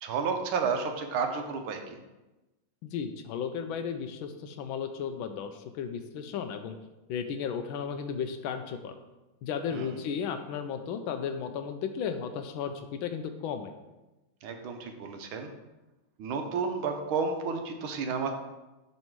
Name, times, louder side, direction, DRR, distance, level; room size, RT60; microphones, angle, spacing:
voice 1, 0.0-2.0 9.7-10.0 14.4-15.5 16.2-18.3, right 5 dB, 75° right, 5 dB, 1.5 m, -31 dB
voice 2, 2.8-6.8 7.1-9.0 9.4-13.7, left 7 dB, 80° left, 8 dB, 1.4 m, -34 dB
5.6 x 5.5 x 4.6 m, 1.1 s
omnidirectional pair, 2.3 m